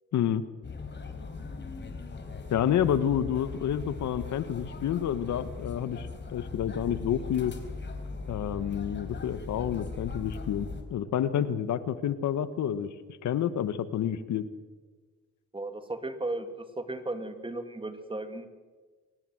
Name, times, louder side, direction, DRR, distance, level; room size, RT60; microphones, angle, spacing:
voice 1, 0.1-0.4 2.5-7.5 8.3-12.9 13.2-14.4, left 9 dB, 70° left, 13 dB, 1.2 m, -29 dB
sound 1, 0.6-10.8, left 4 dB, 35° left, 4.0 m, -39 dB
voice 2, 15.5-18.5, right 2 dB, 15° right, 8 dB, 2.4 m, -35 dB
24.0 x 18.5 x 7.9 m, 1.4 s
cardioid pair, 90°, 30 cm